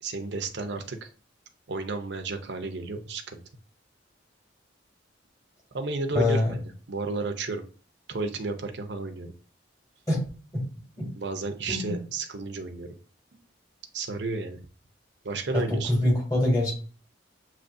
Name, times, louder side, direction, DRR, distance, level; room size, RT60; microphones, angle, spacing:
voice 1, 0.0-1.1 1.7-3.4 5.7-6.4 6.9-7.6 8.1-9.3 11.2-12.9 13.9-14.6 15.2-15.9, right 3 dB, 60° right, 6 dB, 0.6 m, -32 dB
voice 2, 6.1-6.5 10.1-10.2 10.5-10.7 11.0-11.1 11.7-12.0 15.5-16.7, left 1 dB, 20° left, -3 dB, 2.2 m, -24 dB
6.7 x 3.0 x 2.6 m, 0.38 s
head